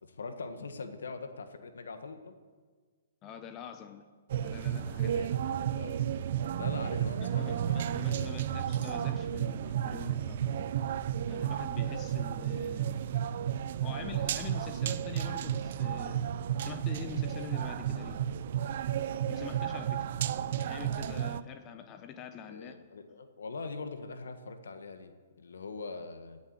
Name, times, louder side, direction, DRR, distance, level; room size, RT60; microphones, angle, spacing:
voice 1, 0.0-2.4 5.0-6.0 6.5-8.6 22.5-25.1 25.4-26.4, left 4 dB, 85° left, 7 dB, 1.6 m, -42 dB
voice 2, 3.2-4.0 4.4-5.2 7.2-10.7 11.3-13.0 13.7-16.3 16.6-18.2 19.3-20.1 20.6-22.8, left 9 dB, 25° left, 8 dB, 0.9 m, -45 dB
sound 1, 4.3-21.4, right 10 dB, 55° right, 0.6 m, -32 dB
17.5 x 7.2 x 9.8 m, 1.5 s
hypercardioid pair, 140°, 0 cm